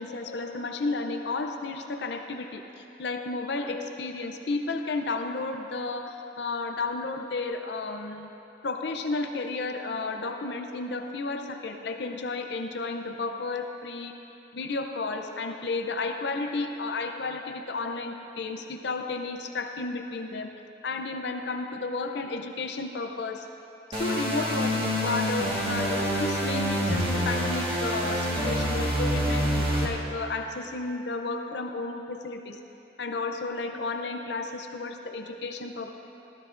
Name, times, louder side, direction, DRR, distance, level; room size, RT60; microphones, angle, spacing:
voice 1, 0.0-8.3 8.6-14.1 14.5-20.5 20.8-23.5 23.9-32.6 33.0-35.9, left 3 dB, 60° left, 5 dB, 0.6 m, -32 dB
sound 1, 23.9-29.8, equal, 30° right, 1.5 m, -27 dB
16.5 x 13.0 x 2.6 m, 2.9 s
head